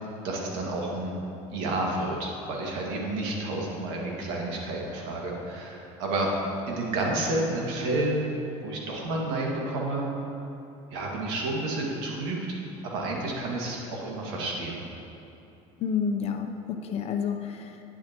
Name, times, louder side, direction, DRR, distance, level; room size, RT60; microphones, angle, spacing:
voice 1, 0.2-1.2 1.5-6.4 6.6-8.3 8.6-10.1 10.9-12.6 12.8-14.8, right 2 dB, 85° right, -2 dB, 2.1 m, -30 dB
voice 2, 15.8-17.8, left 6 dB, 45° left, 5 dB, 0.8 m, -30 dB
11.0 x 9.9 x 3.0 m, 3.0 s
cardioid pair, 130°, 15 cm